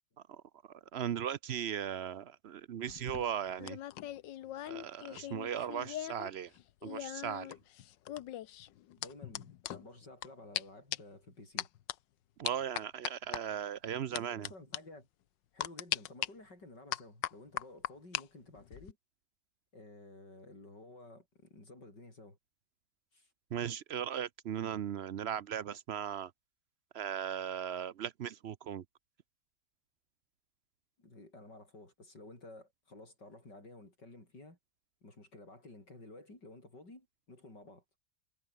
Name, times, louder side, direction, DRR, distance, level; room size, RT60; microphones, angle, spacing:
voice 1, 0.9-3.8 4.7-6.5 6.8-7.5 12.4-14.5 23.5-26.3 26.9-28.8, right 9 dB, 70° right, 0.6 m, -37 dB
sound 1, 2.9-6.3 6.5-10.3 10.5-10.6 10.9-11.2 11.6-11.9 12.4-13.4 14.1-14.5 14.7-14.8 15.6-16.3 16.9-18.2 18.6-18.9, left 12 dB, 90° left, 1.5 m, -39 dB
voice 2, 9.0-11.7 13.9-15.1 15.5-19.0 19.7-22.4 23.1-23.3 31.0-34.6 35.0-37.8, left 2 dB, 70° left, 8.7 m, -53 dB
omnidirectional pair, 1.9 m